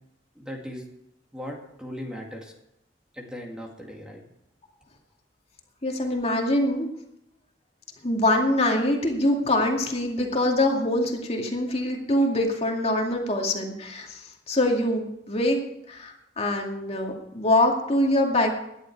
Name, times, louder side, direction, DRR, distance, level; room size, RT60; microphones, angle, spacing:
voice 1, 0.4-0.9 1.3-2.5 3.1-4.2, equal, 5° right, 0 dB, 2.1 m, -38 dB
voice 2, 5.8-6.9 8.0-15.6 15.9-18.6, left 1 dB, 35° left, 1 dB, 2.3 m, -24 dB
18.0 x 11.0 x 4.7 m, 0.82 s
head